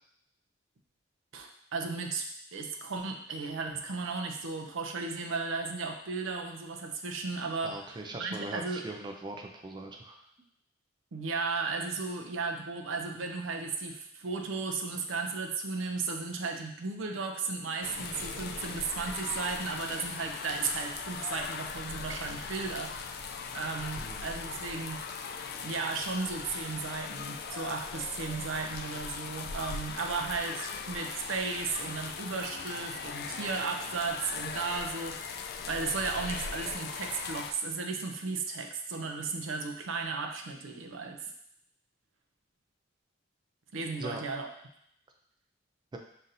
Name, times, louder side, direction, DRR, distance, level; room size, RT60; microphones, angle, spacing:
voice 1, 1.3-2.3 2.5-8.8 11.1-25.1 25.6-41.3 43.7-44.5, right 4 dB, 75° right, 4 dB, 0.5 m, -35 dB
voice 2, 7.6-10.2 24.0-24.3 44.0-44.2 45.9-46.0, right 2 dB, 25° right, 2 dB, 0.3 m, -40 dB
sound 1, 17.8-37.5, left 5 dB, 55° left, 0.3 m, -39 dB
5.6 x 2.6 x 2.6 m, 0.74 s
head